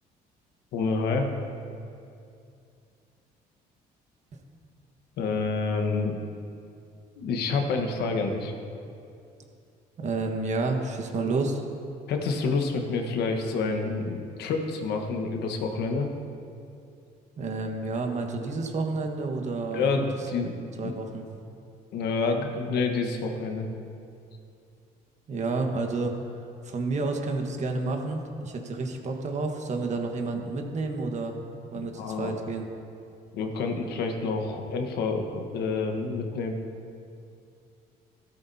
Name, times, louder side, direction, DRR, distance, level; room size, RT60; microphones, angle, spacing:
voice 1, 0.7-1.3 5.2-6.2 7.2-8.5 12.1-16.1 19.7-20.9 21.9-23.7 31.8-32.3 33.3-36.6, left 4 dB, 75° left, 3 dB, 1.4 m, -28 dB
voice 2, 10.0-11.6 17.4-19.9 20.3-20.4 20.8-21.2 25.3-26.2 26.6-31.4 31.7-32.7, right 3 dB, 45° right, 3 dB, 1.4 m, -30 dB
15.0 x 13.0 x 2.8 m, 2.5 s
cardioid pair, 110°, 17 cm